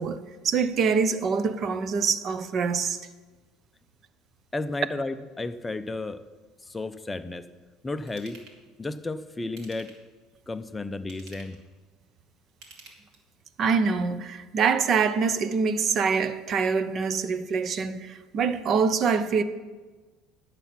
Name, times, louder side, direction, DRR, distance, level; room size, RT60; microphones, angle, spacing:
voice 1, 0.0-3.0 13.6-19.4, right 5 dB, 40° right, 0.7 m, -25 dB
voice 2, 4.5-6.2 6.6-7.5 7.8-8.4 8.8-9.9 10.5-11.6, left 2 dB, 10° left, 0.6 m, -33 dB
Ratchet pawl / Tools, 8.1-8.6 9.4-10.1 10.9-11.6 12.5-13.4 13.9-14.0, right 4 dB, 70° right, 2.4 m, -50 dB
11.0 x 8.1 x 5.8 m
cardioid pair, 135°, 0 cm